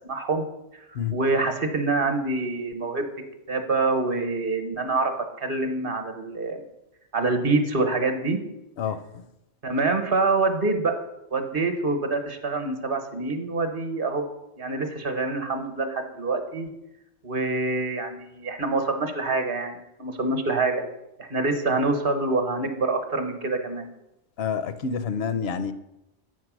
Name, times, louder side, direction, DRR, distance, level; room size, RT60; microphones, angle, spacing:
voice 1, 0.1-0.4 1.1-3.0 3.5-6.6 7.1-8.4 9.6-10.9 11.3-14.2 14.6-16.7 17.2-20.8 21.2-23.9, right 3 dB, 55° right, 6 dB, 1.1 m, -26 dB
voice 2, 8.8-9.2 24.4-25.7, left 6 dB, 70° left, 11 dB, 0.8 m, -28 dB
8.4 x 4.7 x 6.0 m, 0.88 s
omnidirectional pair, 1.1 m